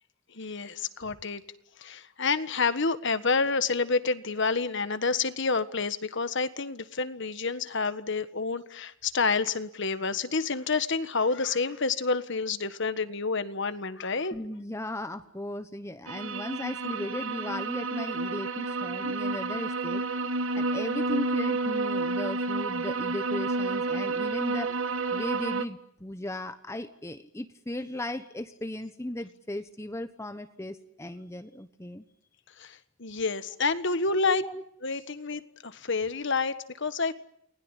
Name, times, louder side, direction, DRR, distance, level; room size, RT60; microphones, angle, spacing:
voice 1, 0.3-1.4 1.8-14.3 32.6-34.4 34.8-37.1, left 4 dB, 60° left, 12 dB, 1.6 m, -29 dB
voice 2, 14.3-20.0 20.6-24.8 25.1-32.0 33.9-34.6, left 1 dB, 15° left, 9 dB, 1.1 m, -37 dB
sound 1, 16.1-25.6, right 3 dB, 70° right, 1.4 m, -30 dB
29.5 x 20.5 x 9.9 m, 0.72 s
head